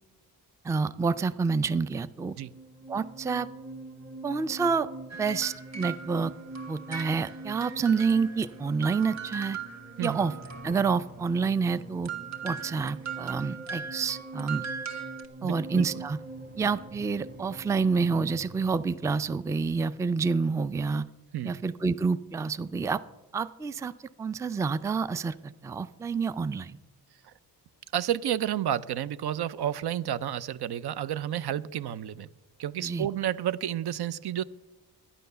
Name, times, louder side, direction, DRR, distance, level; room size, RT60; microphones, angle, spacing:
voice 1, 0.6-2.4 2.9-3.5 4.2-4.9 5.2-6.3 6.7-9.6 10.0-10.3 10.6-12.1 12.4-14.6 15.4-16.2 16.6-21.0 21.4-23.0 23.3-23.9 24.2-26.8 32.8-33.1, right 5 dB, 10° right, 15 dB, 0.3 m, -28 dB
sound 1, 2.2-20.7, right 2 dB, 25° right, 1.1 m, -45 dB
sound 2, 5.1-8.6 8.8-11.0 12.0-15.2, right 6 dB, 40° right, 1.6 m, -39 dB
voice 2, 15.4-15.9 21.3-21.6 27.2-27.3 27.9-32.3 32.6-34.4, right 11 dB, 70° right, 17 dB, 0.6 m, -31 dB
11.5 x 10.0 x 6.7 m, 1.1 s
cardioid pair, 100°, 40 cm